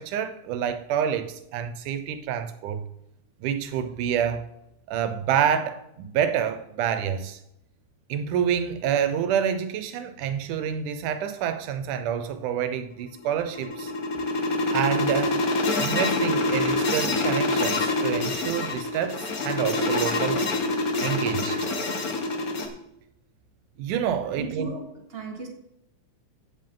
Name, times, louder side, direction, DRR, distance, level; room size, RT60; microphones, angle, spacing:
voice 1, 0.0-2.8 3.4-4.5 4.9-7.4 8.1-13.9 14.7-15.4 15.8-20.4 21.0-21.7 23.8-24.7, right 8 dB, 85° right, 2.4 m, -27 dB
sound 1, 13.2-22.7, left 2 dB, 50° left, 1.0 m, -26 dB
voice 2, 24.4-24.8 25.1-25.5, right 2 dB, 30° right, 1.3 m, -35 dB
15.0 x 7.3 x 3.8 m
omnidirectional pair, 3.5 m